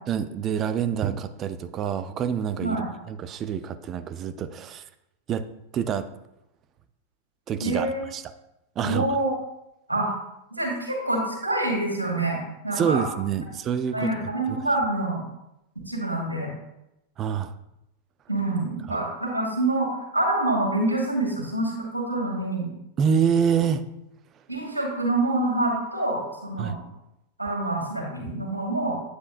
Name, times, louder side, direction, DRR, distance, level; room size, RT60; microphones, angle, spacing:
voice 1, 0.1-2.8 3.1-4.8 5.3-5.4 5.7-6.1 7.5-7.9 8.1-8.2 8.8-9.0 12.7-14.1 14.5-14.6 17.2-17.5 18.9-19.0 23.0-23.8 26.6-26.7, right 7 dB, 30° right, 12 dB, 0.6 m, -26 dB
voice 2, 7.6-8.0 8.8-9.3 9.9-10.1 10.5-13.0 13.9-15.2 15.9-16.5 18.3-22.7 24.5-26.7 27.4-28.9, right 2 dB, 85° right, -2 dB, 2.5 m, -26 dB
9.6 x 8.2 x 2.5 m, 0.87 s
figure-of-eight pair, 90°, 0 cm